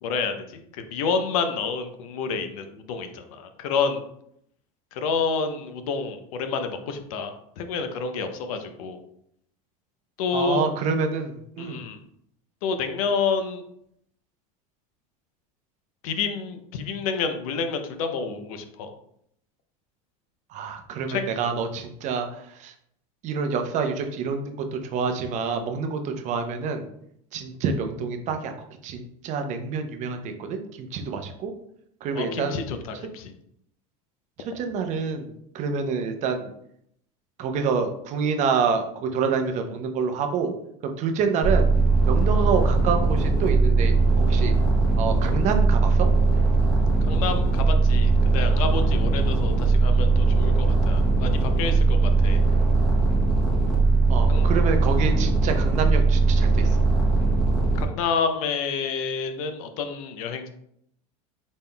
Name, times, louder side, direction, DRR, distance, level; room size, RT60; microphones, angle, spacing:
voice 1, 0.0-4.0 4.9-9.0 10.2-10.6 11.6-12.0 12.6-13.6 16.0-18.9 21.1-21.2 32.1-33.3 47.0-52.4 54.3-54.5 57.7-60.5, left 5 dB, 75° left, 7 dB, 0.6 m, -29 dB
voice 2, 10.3-11.8 20.5-22.7 23.2-26.8 27.3-31.5 32.0-32.6 34.4-36.5 37.4-40.5 40.8-41.7 42.1-44.5 44.9-46.1 54.1-56.8, right 5 dB, 40° right, 6 dB, 0.6 m, -27 dB
sound 1, 41.4-57.9, right 3 dB, ahead, 1.1 m, -20 dB
4.1 x 3.6 x 2.3 m, 0.71 s
supercardioid pair, 125°, 18 cm